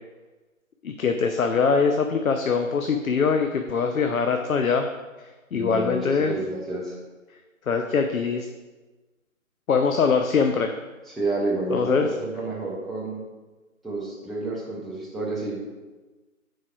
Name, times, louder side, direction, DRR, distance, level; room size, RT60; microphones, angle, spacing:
voice 1, 0.8-4.9 5.2-6.4 7.7-8.5 9.7-10.7 11.7-12.1, left 5 dB, 75° left, 5 dB, 0.6 m, -23 dB
voice 2, 5.5-7.0 11.1-13.2 13.8-15.6, right 2 dB, ahead, -6 dB, 0.4 m, -30 dB
4.9 x 4.7 x 4.4 m, 1.2 s
figure-of-eight pair, 160°, 42 cm